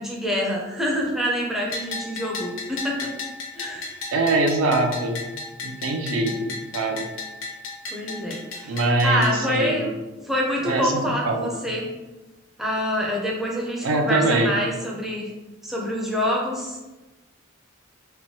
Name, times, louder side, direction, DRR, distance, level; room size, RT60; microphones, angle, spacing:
voice 1, 0.0-3.1 3.6-4.0 7.9-11.9 12.6-15.3 15.6-16.8, equal, ahead, -3 dB, 0.4 m, -26 dB
Bell, 1.7-9.3, left 3 dB, 75° left, 0.5 m, -35 dB
voice 2, 4.1-5.2 5.6-7.1 8.7-9.9 10.6-11.5 13.8-14.6, right 2 dB, 85° right, 3 dB, 0.4 m, -23 dB
3.0 x 2.2 x 2.7 m, 1.1 s
head